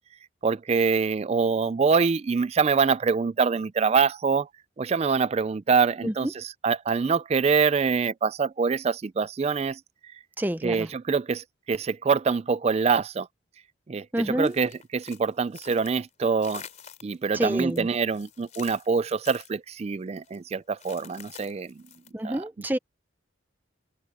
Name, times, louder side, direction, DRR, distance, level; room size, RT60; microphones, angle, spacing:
voice 1, 0.4-4.5 4.8-6.3 6.6-9.8 10.6-13.3 13.9-14.1 14.4-16.6 17.0-21.7 22.2-22.4, right 5 dB, 35° right, 0.3 m, -25 dB
voice 2, 6.0-6.3 10.4-10.9 14.1-14.6 17.3-17.9 22.1-22.8, right 1 dB, 10° right, 0.7 m, -28 dB
sound 1, 14.4-16.1 16.4-17.2 17.5-19.5 20.2-20.4 20.8-22.1, left 8 dB, 35° left, 3.9 m, -47 dB
open air
head